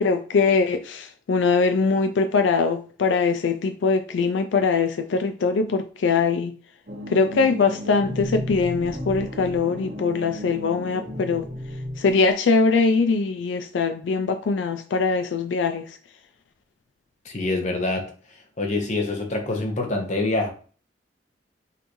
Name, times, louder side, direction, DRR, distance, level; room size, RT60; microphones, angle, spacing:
voice 1, 0.0-6.5 7.1-11.4 12.0-16.0, left 4 dB, 90° left, 0.4 m, -22 dB
sound 1, 6.9-12.1, left 1 dB, 75° right, 1.7 m, -34 dB
voice 2, 17.2-18.1 18.6-20.5, left 2 dB, 40° left, 1.0 m, -25 dB
5.6 x 2.6 x 3.0 m
head